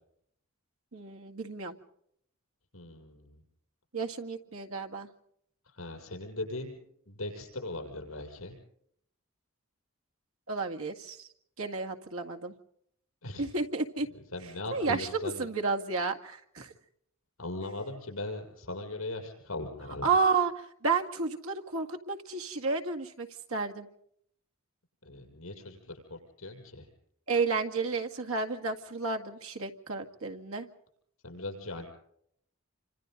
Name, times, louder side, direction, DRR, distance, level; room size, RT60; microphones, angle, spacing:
voice 1, 0.9-1.8 3.9-5.1 10.5-11.3 11.6-12.5 13.4-14.1 14.7-16.7 20.0-23.9 27.3-30.7, right 4 dB, 85° right, 3 dB, 2.0 m, -31 dB
voice 2, 2.7-3.4 5.7-6.8 7.1-8.6 13.2-13.5 14.3-15.4 17.4-20.1 25.0-26.9 31.2-31.9, left 2 dB, 85° left, 2 dB, 7.0 m, -39 dB
28.0 x 26.0 x 4.0 m, 0.70 s
head